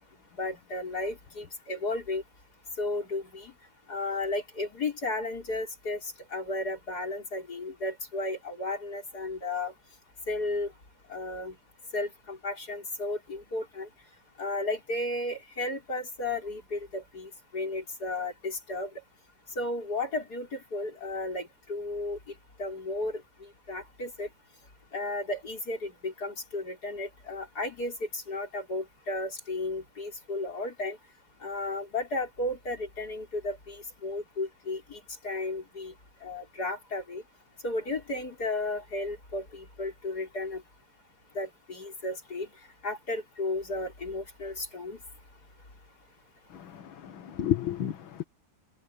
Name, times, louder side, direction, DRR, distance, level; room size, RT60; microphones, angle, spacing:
voice 1, 0.4-2.2 2.8-3.5 3.9-9.7 10.3-10.7 11.1-11.6 11.9-13.9 14.4-18.9 19.6-22.2 22.6-23.2 23.7-24.3 24.9-31.0 31.4-35.9 36.2-37.2 37.6-40.6 41.3-42.5 42.8-45.0, left 2 dB, 45° left, 5.7 m, -34 dB
voice 2, 46.5-48.2, left 10 dB, 70° left, 2.1 m, -32 dB
omnidirectional pair, 2.3 m